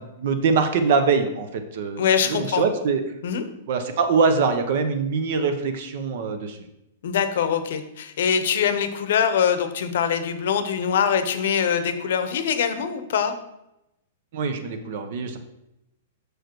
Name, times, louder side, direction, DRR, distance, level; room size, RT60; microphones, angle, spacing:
voice 1, 0.0-3.0 3.7-6.6 14.3-15.4, right 5 dB, 50° right, 8 dB, 0.8 m, -23 dB
voice 2, 2.0-2.7 3.2-3.4 7.0-13.3, left 7 dB, 65° left, 10 dB, 0.7 m, -23 dB
6.5 x 4.9 x 4.5 m, 0.86 s
hypercardioid pair, 160°, 0 cm